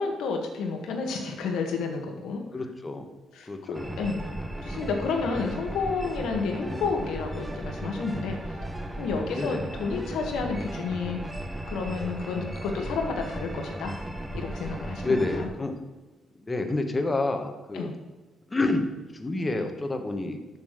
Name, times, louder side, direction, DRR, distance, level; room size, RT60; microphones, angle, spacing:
voice 1, 0.0-2.6 3.3-4.2 4.6-8.4 9.0-11.2 11.7-14.0 14.3-15.5 17.7-17.9, left 4 dB, 85° left, 3 dB, 1.9 m, -31 dB
voice 2, 2.5-3.1 3.5-3.9 6.6-6.8 9.4-9.6 15.0-15.8 16.4-17.9 18.5-18.9 19.1-20.6, left 2 dB, 20° left, 6 dB, 1.5 m, -29 dB
sound 1, 3.7-15.5, right 1 dB, 10° right, 1.1 m, -36 dB
7.4 x 7.0 x 6.8 m, 1.2 s
cardioid pair, 90°, 0 cm